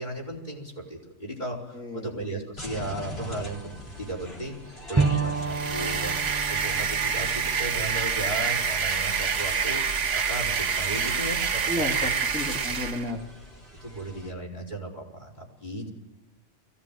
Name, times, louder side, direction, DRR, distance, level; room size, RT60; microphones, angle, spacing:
voice 1, 0.0-4.6 4.9-6.2 6.5-9.8 10.1-12.1 13.8-15.9, right 2 dB, 40° left, -1 dB, 4.8 m, -35 dB
voice 2, 1.7-2.1 11.7-13.2, left 1 dB, 5° left, 0 dB, 2.1 m, -32 dB
sound 1, 2.6-14.3, left 1 dB, 55° left, 4.3 m, -44 dB
Bowed string instrument, 5.0-8.7, right 4 dB, 15° right, 0.8 m, -30 dB
sound 2, 5.4-13.1, right 6 dB, 85° right, 1.8 m, -27 dB
22.5 x 17.0 x 9.2 m, 1.1 s
omnidirectional pair, 1.2 m